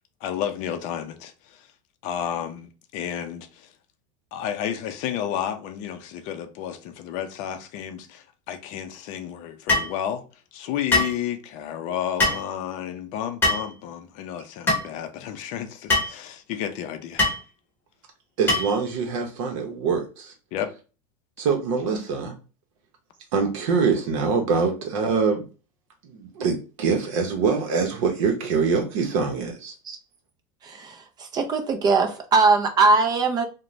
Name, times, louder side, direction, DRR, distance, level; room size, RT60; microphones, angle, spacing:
voice 1, 0.2-1.7 2.0-3.7 4.3-10.3 10.5-17.3 20.5-20.7, left 10 dB, 45° left, 0.5 m, -31 dB
sound 1, 9.7-9.9 10.9-11.2 12.2-12.4 13.4-13.7 14.7-14.8 15.9-16.1 17.2-17.4 18.5-18.8, left 2 dB, 10° left, 0.9 m, -22 dB
voice 2, 18.4-20.3 21.4-22.3 23.3-25.4 26.0-29.7, right 5 dB, 70° right, 0.7 m, -24 dB
voice 3, 30.6-33.4, right 4 dB, 25° right, 0.4 m, -21 dB
2.5 x 2.1 x 3.1 m
supercardioid pair, 145°, 17 cm